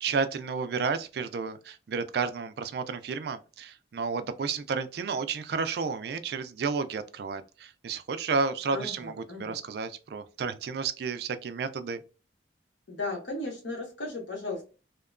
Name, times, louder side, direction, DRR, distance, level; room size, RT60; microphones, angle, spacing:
voice 1, 0.0-12.0, right 5 dB, 60° right, 0.3 m, -31 dB
voice 2, 8.7-9.6 12.9-14.6, left 2 dB, 85° left, 1.1 m, -36 dB
2.8 x 2.2 x 2.3 m
head